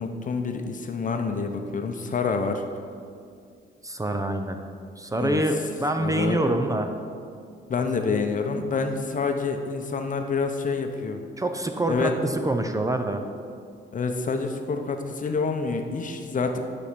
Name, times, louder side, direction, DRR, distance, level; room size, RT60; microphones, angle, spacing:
voice 1, 0.0-2.6 5.2-5.4 6.0-6.4 7.7-11.2 11.9-12.1 13.9-16.6, left 4 dB, 40° left, 5 dB, 0.8 m, -27 dB
voice 2, 3.8-4.6 5.0-6.9 11.4-13.2, right 1 dB, 15° right, 6 dB, 0.6 m, -26 dB
11.5 x 4.3 x 5.1 m, 2.3 s
cardioid pair, 90°, 20 cm